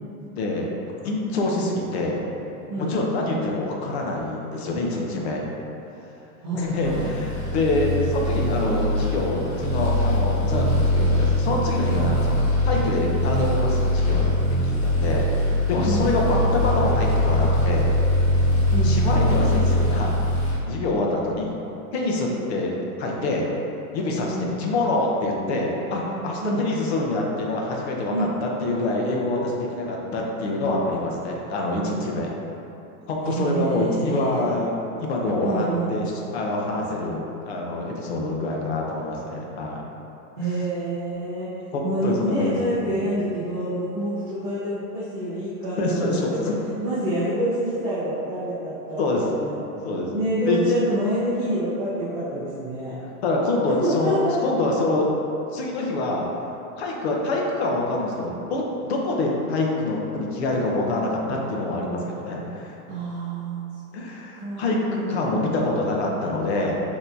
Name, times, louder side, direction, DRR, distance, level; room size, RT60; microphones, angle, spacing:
voice 1, 0.4-0.7 1.0-2.2 2.8-5.5 6.5-14.3 14.6-15.3 15.7-17.9 18.8-20.1 20.6-21.6 21.9-23.5 23.9-32.3 33.1-34.7 35.0-39.8 41.7-43.1 45.8-46.6 49.0-49.2 49.8-50.1 50.4-50.6 53.2-54.2 54.4-55.1 55.5-56.3 56.8-62.8 63.9-66.8, left 2 dB, 45° left, -1 dB, 0.7 m, -26 dB
voice 2, 6.4-7.1 15.8-16.1 18.7-19.0 24.3-24.5 26.4-26.6 28.1-28.3 33.2-34.5 35.4-35.9 40.4-41.5 41.8-46.5 46.8-49.6 50.1-52.9 53.6-54.4 62.9-63.6 64.3-65.3, right 1 dB, 25° right, -12 dB, 0.7 m, -27 dB
sound 1, 6.8-20.6, left 1 dB, 5° left, 1.0 m, -22 dB
6.5 x 2.9 x 2.6 m, 3.0 s
supercardioid pair, 175°, 44 cm